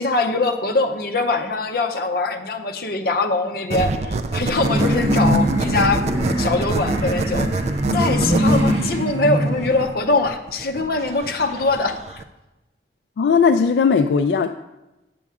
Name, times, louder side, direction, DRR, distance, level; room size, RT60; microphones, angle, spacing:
voice 1, 0.0-7.5 7.9-12.2, left 3 dB, 55° left, 5 dB, 0.7 m, -22 dB
sound 1, 3.7-12.2, right 3 dB, 40° right, 0.3 m, -26 dB
sound 2, 4.5-9.8, equal, 80° right, 2.3 m, -22 dB
voice 2, 13.2-14.5, left 5 dB, 75° left, 7 dB, 0.3 m, -17 dB
8.5 x 6.9 x 3.6 m, 0.99 s
head